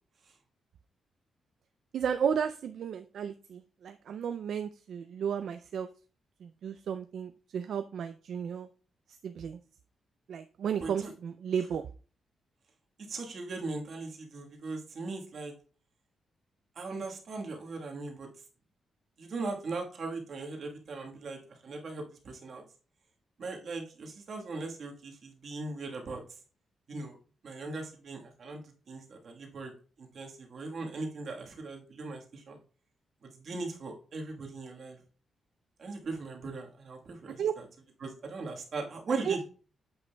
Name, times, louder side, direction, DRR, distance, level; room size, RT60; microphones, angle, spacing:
voice 1, 1.9-5.9 6.4-8.7 9.2-9.6 10.3-11.8 37.4-37.5 39.2-39.4, right 7 dB, 65° right, 8 dB, 0.3 m, -33 dB
voice 2, 10.8-11.1 13.1-15.5 16.7-18.3 19.2-22.6 23.4-26.2 26.9-27.2 27.4-29.7 30.0-32.6 33.2-35.0 35.8-37.6 38.0-39.4, right 3 dB, 50° right, 1 dB, 1.4 m, -39 dB
8.8 x 7.6 x 2.2 m, 0.39 s
wide cardioid pair, 150°, 0 cm